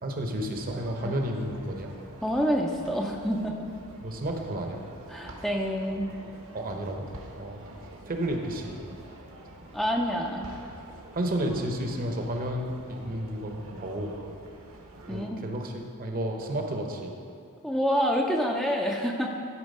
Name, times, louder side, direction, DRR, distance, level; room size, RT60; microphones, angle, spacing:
voice 1, 0.0-1.9 4.0-4.8 6.5-7.1 7.4-7.6 8.1-8.8 11.1-14.1 15.1-17.1, right 1 dB, 40° right, 3 dB, 0.8 m, -31 dB
sound 1, 0.6-15.3, right 1 dB, 65° right, 1.0 m, -47 dB
voice 2, 2.2-3.7 5.1-6.1 9.7-10.5 15.1-15.4 17.6-19.3, equal, ahead, -1 dB, 0.4 m, -27 dB
11.5 x 4.4 x 5.3 m, 2.4 s
head